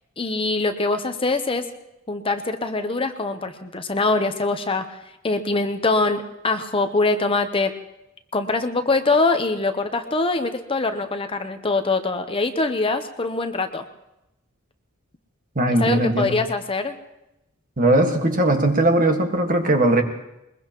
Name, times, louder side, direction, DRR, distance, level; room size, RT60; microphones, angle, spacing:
voice 1, 0.2-1.6 2.1-5.0 5.2-7.7 8.3-13.8 15.8-16.9, left 3 dB, 25° left, 8 dB, 0.8 m, -23 dB
voice 2, 15.5-16.4 17.8-20.0, right 1 dB, 40° right, 4 dB, 1.6 m, -19 dB
22.0 x 21.5 x 3.0 m, 0.90 s
head